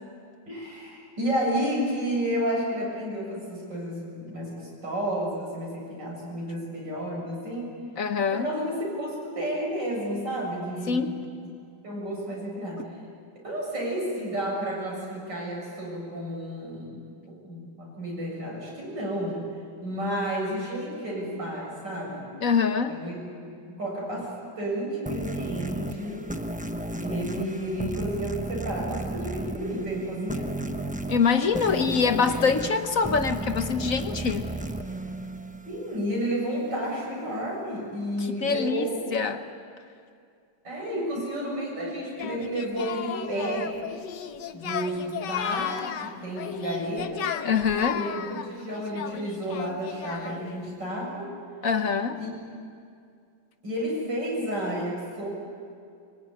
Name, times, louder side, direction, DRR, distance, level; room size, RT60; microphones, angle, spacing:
voice 1, 0.5-7.7 8.3-11.1 11.8-12.8 13.4-19.4 19.8-22.3 22.9-26.3 27.0-30.7 31.6-31.9 35.6-39.0 40.6-43.8 44.5-47.3 47.9-51.3 52.2-52.3 53.6-55.3, equal, 85° right, -3 dB, 8.3 m, -31 dB
voice 2, 8.0-8.5 10.9-11.1 22.4-23.0 31.1-34.5 38.2-39.4 47.4-48.0 51.6-52.2, left 5 dB, 55° left, 8 dB, 1.4 m, -24 dB
sound 1, 25.1-36.2, right 1 dB, 5° right, 0.7 m, -34 dB
Singing, 42.2-50.5, left 9 dB, 80° left, 1.6 m, -34 dB
24.5 x 23.5 x 9.8 m, 2.3 s
omnidirectional pair, 1.9 m